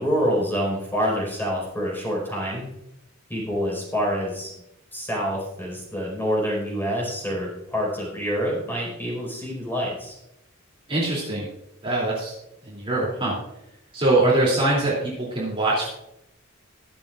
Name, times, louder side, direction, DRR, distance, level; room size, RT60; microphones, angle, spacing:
voice 1, 0.0-2.6 3.3-4.5 4.9-10.2, equal, 10° left, -4 dB, 4.6 m, -26 dB
voice 2, 10.9-11.5 11.8-12.3 12.6-13.4 13.9-15.9, right 2 dB, 25° right, -5 dB, 2.8 m, -23 dB
21.5 x 7.2 x 2.5 m, 0.86 s
head